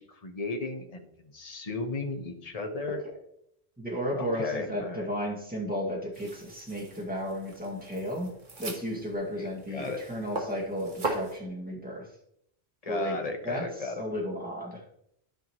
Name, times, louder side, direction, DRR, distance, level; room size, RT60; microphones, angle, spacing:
voice 1, 0.0-3.0 4.1-5.1 9.4-10.0 12.8-14.0, left 3 dB, 35° left, 5 dB, 1.1 m, -35 dB
voice 2, 3.8-8.3 8.6-12.1 12.8-14.8, equal, 10° right, -3 dB, 2.1 m, -34 dB
sound 1, 6.1-11.4, right 2 dB, 45° right, 1.4 m, -39 dB
12.5 x 5.7 x 3.1 m, 0.75 s
omnidirectional pair, 1.1 m